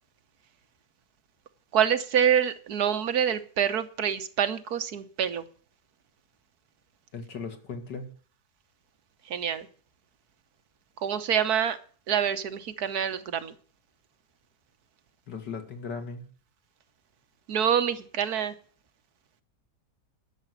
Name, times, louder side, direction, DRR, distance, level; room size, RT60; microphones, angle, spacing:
voice 1, 1.7-5.4 9.3-9.7 11.0-11.8 12.1-13.5 17.5-18.5, right 8 dB, 65° right, 10 dB, 1.5 m, -26 dB
voice 2, 7.1-8.2 15.3-16.3, left 5 dB, 85° left, 6 dB, 2.7 m, -37 dB
12.5 x 7.0 x 9.5 m, 0.43 s
omnidirectional pair, 1.8 m